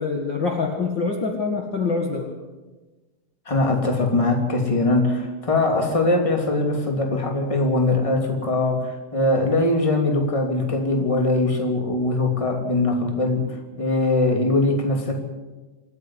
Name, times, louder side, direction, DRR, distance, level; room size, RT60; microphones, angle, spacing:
voice 1, 0.0-2.3, left 4 dB, 40° left, 1 dB, 2.2 m, -25 dB
voice 2, 3.5-15.2, left 2 dB, 10° left, 2 dB, 2.5 m, -21 dB
27.0 x 9.5 x 9.9 m, 1.2 s
omnidirectional pair, 3.9 m